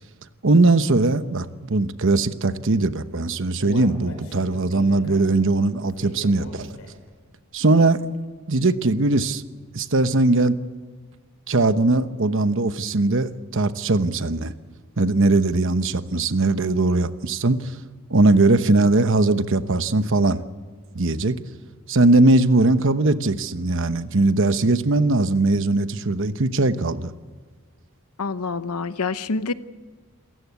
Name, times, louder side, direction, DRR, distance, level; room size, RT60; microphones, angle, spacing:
voice 1, 0.4-6.7 7.5-8.2 8.5-9.4 9.7-10.6 11.5-14.5 15.0-17.8 18.1-20.4 20.9-21.4 21.9-27.1, right 2 dB, 60° right, 11 dB, 1.0 m, -20 dB
Human voice, 3.1-7.2 7.6-7.7 8.1-8.2, equal, 65° left, 5.7 m, -40 dB
voice 2, 28.2-29.5, left 4 dB, 85° left, 13 dB, 0.9 m, -26 dB
28.0 x 15.5 x 8.3 m, 1.4 s
head